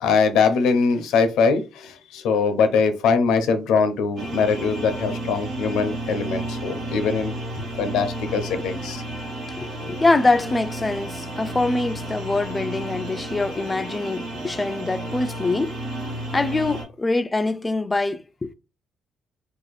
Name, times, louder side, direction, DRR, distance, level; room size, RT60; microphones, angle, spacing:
voice 1, 0.0-9.0, left 5 dB, 90° left, 0.6 m, -22 dB
sound 1, 4.2-16.8, right 1 dB, 80° right, 1.3 m, -32 dB
voice 2, 9.6-15.8 16.3-18.5, left 2 dB, 20° left, 0.3 m, -24 dB
2.7 x 2.4 x 4.0 m
cardioid pair, 90°, 0 cm